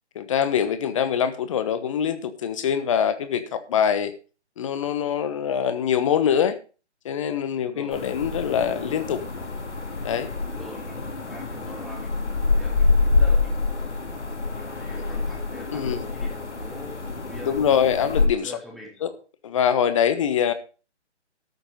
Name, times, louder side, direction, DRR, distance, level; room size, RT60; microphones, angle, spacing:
voice 1, 0.1-4.1 4.6-6.6 7.0-9.2 10.0-10.3 15.7-16.0 17.4-18.5 19.0-19.1 19.4-20.5, left 8 dB, 30° left, 11 dB, 1.2 m, -24 dB
voice 2, 7.6-8.1 10.4-11.0 11.3-13.9 14.6-17.8 18.4-19.2, left 1 dB, ahead, 0 dB, 0.6 m, -44 dB
sound 1, 7.9-18.3, left 3 dB, 75° left, 3.0 m, -26 dB
13.5 x 7.0 x 5.3 m, 0.36 s
figure-of-eight pair, 145°, 35 cm